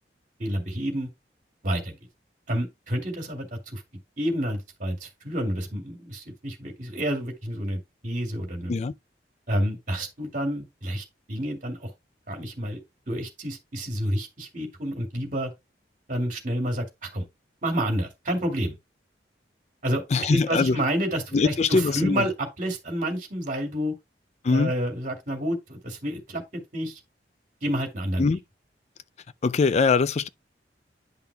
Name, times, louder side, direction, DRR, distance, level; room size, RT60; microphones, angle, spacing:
voice 1, 0.4-1.1 1.6-2.0 2.5-3.8 4.2-8.8 9.5-11.9 12.3-12.8 13.1-15.5 16.1-17.3 17.6-18.8 19.8-20.0 20.3-23.9 24.5-27.0 27.6-28.3, equal, 45° right, 2.3 m, -29 dB
voice 2, 20.1-20.8 21.3-22.2 24.4-24.7 28.2-28.4 29.4-30.3, left 4 dB, 40° left, 0.4 m, -22 dB
10.5 x 5.7 x 2.3 m
head